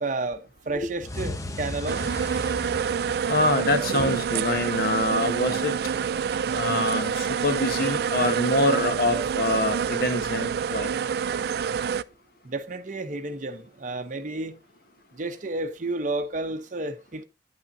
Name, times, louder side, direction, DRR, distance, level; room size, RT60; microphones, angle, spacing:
voice 1, 0.0-2.1 12.4-14.6 15.1-17.2, right 2 dB, 45° right, 0.8 m, -31 dB
sound 1, 1.0-4.2, left 1 dB, 20° left, 0.7 m, -36 dB
sound 2, 1.9-12.0, right 7 dB, 60° right, 0.3 m, -27 dB
voice 2, 3.3-5.8 6.5-10.9, left 1 dB, 55° left, 1.1 m, -25 dB
9.5 x 8.5 x 2.6 m
head